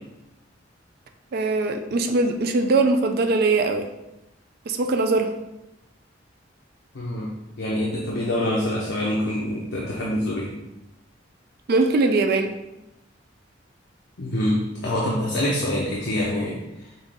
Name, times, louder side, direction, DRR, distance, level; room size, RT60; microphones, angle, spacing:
voice 1, 1.3-3.9 4.7-5.3 11.7-12.5, right 3 dB, 55° right, 6 dB, 0.4 m, -21 dB
voice 2, 6.9-7.3 7.6-10.6 14.2-16.9, left 1 dB, 70° left, -3 dB, 0.7 m, -25 dB
5.5 x 2.4 x 3.5 m, 0.94 s
head